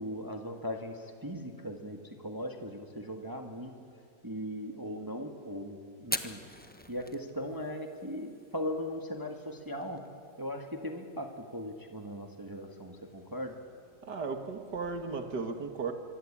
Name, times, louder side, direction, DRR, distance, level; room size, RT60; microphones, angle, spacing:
voice 1, 0.0-3.7 4.2-6.4 6.9-10.0 10.4-13.6, equal, 15° right, 3 dB, 1.6 m, -39 dB
Fire, 6.0-15.2, left 1 dB, 5° left, 1.0 m, -46 dB
voice 2, 14.0-15.9, right 4 dB, 80° right, 6 dB, 2.6 m, -35 dB
25.5 x 24.5 x 8.7 m, 2.3 s
omnidirectional pair, 1.8 m